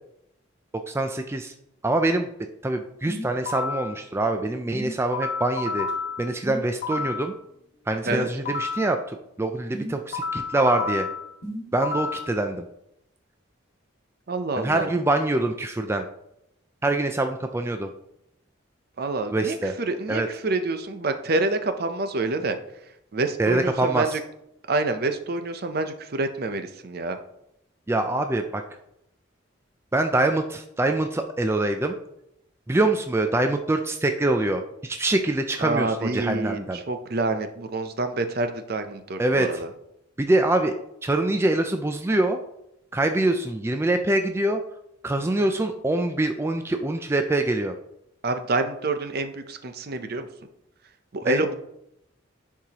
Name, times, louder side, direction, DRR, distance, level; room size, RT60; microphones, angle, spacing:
voice 1, 0.9-1.5 1.8-2.3 2.6-5.9 6.2-7.3 7.9-11.1 11.7-12.7 14.6-16.0 16.8-17.9 19.3-19.7 20.1-20.3 23.4-24.2 27.9-28.6 29.9-32.0 32.7-36.8 39.2-39.5 40.2-40.8 41.0-42.4 42.9-44.6 45.0-47.7 51.2-51.4, right 2 dB, 15° right, 5 dB, 0.3 m, -24 dB
sound 1, 3.1-3.9 4.7-7.3 8.1-8.9 9.7-12.3, left 3 dB, 60° left, 1.9 m, -31 dB
voice 2, 14.3-14.9 19.0-22.6 23.1-24.2 24.7-27.2 35.6-39.7 48.2-50.3 51.1-51.5, right 2 dB, 50° right, 8 dB, 0.6 m, -27 dB
10.5 x 4.7 x 2.9 m, 0.80 s
head